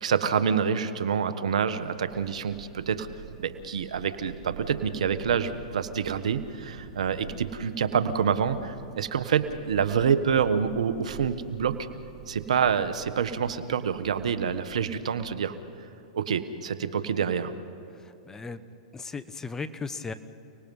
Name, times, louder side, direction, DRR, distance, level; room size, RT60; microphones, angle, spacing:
voice 1, 0.0-3.1 3.4-11.8 12.3-15.5 16.1-17.5, right 7 dB, 80° right, 11 dB, 1.3 m, -27 dB
Thunder / Rain, 1.7-15.6, right 6 dB, 65° right, 2.7 m, -46 dB
voice 2, 17.9-18.6 18.9-20.1, left 4 dB, 15° left, 12 dB, 1.1 m, -36 dB
30.0 x 19.0 x 5.6 m, 3.0 s
hypercardioid pair, 115°, 4 cm